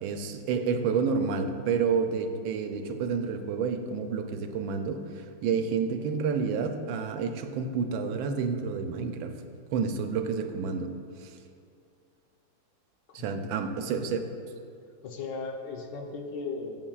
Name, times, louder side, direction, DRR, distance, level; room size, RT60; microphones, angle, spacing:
voice 1, 0.0-9.3 9.7-10.9 11.2-11.3 13.1-14.3, right 5 dB, 80° right, 7 dB, 1.4 m, -29 dB
voice 2, 13.1-14.3 15.0-16.8, left 4 dB, 70° left, 2 dB, 1.3 m, -38 dB
17.0 x 5.6 x 2.3 m, 2.4 s
omnidirectional pair, 2.1 m